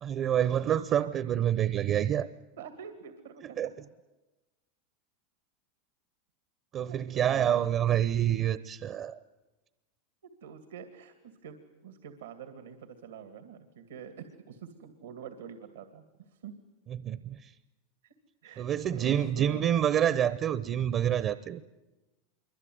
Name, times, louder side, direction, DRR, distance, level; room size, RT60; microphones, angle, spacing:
voice 1, 0.0-2.3 3.4-3.7 6.7-9.2 16.9-17.5 18.6-21.6, right 10 dB, 40° right, 0.8 m, -27 dB
voice 2, 2.6-3.6 6.9-7.9 10.2-11.1 11.4-11.6 11.8-16.0 16.4-16.5 18.0-18.1 18.4-18.7 18.9-19.6, right 7 dB, 90° right, 2.4 m, -45 dB
26.5 x 23.5 x 9.5 m
hypercardioid pair, 105°, 0 cm